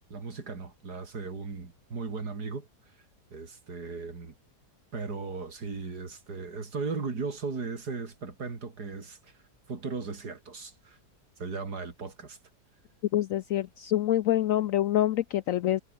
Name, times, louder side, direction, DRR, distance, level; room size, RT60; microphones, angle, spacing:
voice 1, 0.1-2.7 3.3-4.3 4.9-9.2 9.7-11.0 11.4-12.4, right 4 dB, 65° right, 3.5 m, -37 dB
voice 2, 13.1-15.8, left 12 dB, 70° left, 0.8 m, -26 dB
omnidirectional pair, 1.8 m